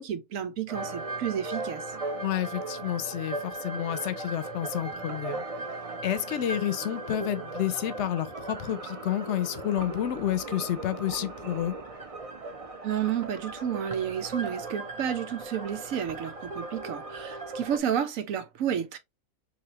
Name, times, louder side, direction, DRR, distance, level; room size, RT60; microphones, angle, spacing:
voice 1, 0.0-1.8 12.8-19.0, right 9 dB, 85° right, 1.1 m, -31 dB
sound 1, 0.7-17.8, right 2 dB, 35° right, 0.6 m, -38 dB
voice 2, 2.2-5.4 6.0-11.7, left 11 dB, 65° left, 0.9 m, -30 dB
4.0 x 2.7 x 2.9 m
omnidirectional pair, 1.4 m